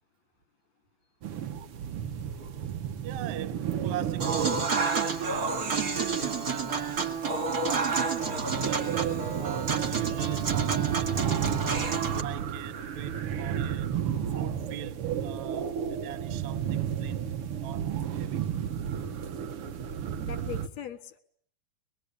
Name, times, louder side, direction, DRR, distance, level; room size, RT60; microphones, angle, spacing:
sound 1, 1.2-20.7, right 9 dB, 80° right, 1.2 m, -33 dB
voice 1, 3.0-7.2 7.7-9.0 9.4-11.8 12.1-13.9 14.3-17.3 17.6-18.5, right 12 dB, 60° right, 2.1 m, -42 dB
Human voice / Acoustic guitar / Piano, 4.2-12.2, right 5 dB, 35° right, 1.8 m, -29 dB
voice 2, 20.2-21.2, left 9 dB, 60° left, 2.1 m, -40 dB
25.5 x 21.0 x 9.8 m
omnidirectional pair, 4.5 m